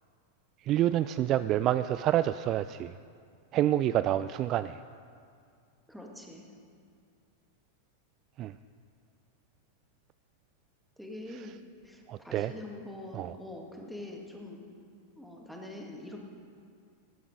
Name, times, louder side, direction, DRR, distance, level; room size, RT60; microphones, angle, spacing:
voice 1, 0.6-2.9 3.5-4.8 8.4-8.5 12.1-12.5 13.1-13.3, right 12 dB, 35° right, 13 dB, 0.3 m, -28 dB
voice 2, 5.9-6.5 11.0-11.6 11.8-14.6 15.2-16.2, left 1 dB, ahead, 0 dB, 2.1 m, -44 dB
18.0 x 11.0 x 5.0 m, 2.3 s
figure-of-eight pair, 90°, 0 cm